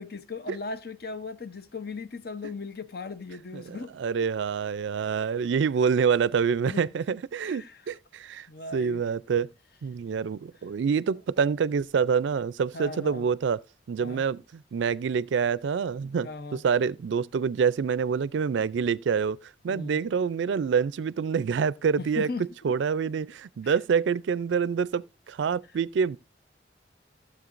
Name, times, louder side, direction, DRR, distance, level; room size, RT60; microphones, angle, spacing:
voice 1, 0.0-4.3 6.7-6.9 7.4-7.8 8.5-9.0 12.7-13.3 14.0-14.3 16.2-16.6 19.7-20.0 22.0-22.7 23.0-23.1 23.6-23.8, left 3 dB, 55° left, 0.7 m, -38 dB
voice 2, 3.5-8.5 8.7-9.5 9.8-13.6 13.9-19.4 19.6-22.3 22.6-26.2, right 6 dB, 75° right, 0.4 m, -26 dB
15.0 x 7.4 x 2.5 m
head